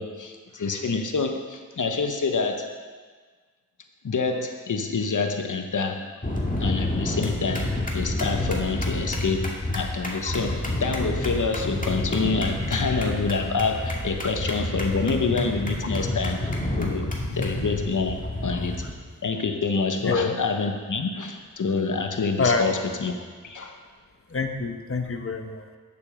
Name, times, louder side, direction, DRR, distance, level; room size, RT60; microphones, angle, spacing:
voice 1, 0.0-2.7 4.0-6.1 6.6-16.5 16.7-18.8 19.2-23.2 23.4-23.8, left 4 dB, 65° left, 5 dB, 1.1 m, -27 dB
sound 1, 6.2-18.9, left 1 dB, 25° left, 2.2 m, -29 dB
voice 2, 20.0-20.4 22.4-22.7 24.3-25.6, left 4 dB, 40° left, 5 dB, 1.2 m, -26 dB
8.3 x 6.8 x 6.5 m, 1.5 s
cardioid pair, 40°, 32 cm